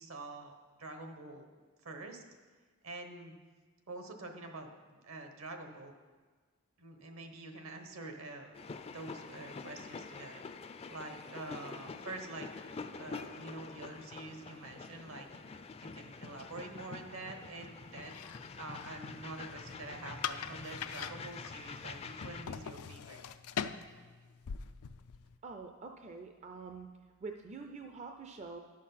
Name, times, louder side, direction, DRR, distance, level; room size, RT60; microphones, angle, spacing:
voice 1, 0.0-1.5 1.8-2.2 2.8-3.3 3.9-5.9 6.8-10.4 10.9-12.7 13.0-15.3 15.5-23.2, right 2 dB, 70° right, 5 dB, 1.2 m, -46 dB
sound 1, 8.5-22.4, left 4 dB, 30° left, 0.4 m, -46 dB
sound 2, 18.0-25.4, left 7 dB, 90° left, 0.4 m, -43 dB
voice 2, 25.4-26.9 27.2-28.6, right 4 dB, 30° right, 4 dB, 0.5 m, -45 dB
11.0 x 6.5 x 5.7 m, 1.5 s
head